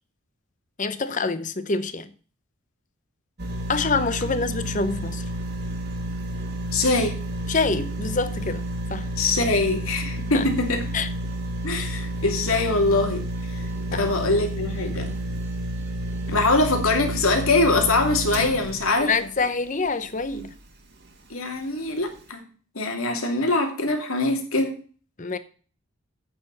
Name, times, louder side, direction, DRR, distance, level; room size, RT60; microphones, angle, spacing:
voice 1, 0.8-2.1 3.7-5.2 7.5-8.6 8.9-9.1 10.3-10.5 10.9-11.1 13.9-14.1 19.0-20.5 25.2-25.4, left 4 dB, 35° left, 0.8 m, -26 dB
sound 1, 3.4-20.6 21.1-21.2, right 1 dB, 50° right, 1.7 m, -31 dB
voice 2, 6.7-7.2 9.2-10.8 11.6-13.6 14.0-15.1 16.3-19.1 21.3-22.4 22.7-24.8, left 2 dB, 80° left, 2.6 m, -23 dB
8.6 x 6.9 x 6.8 m
head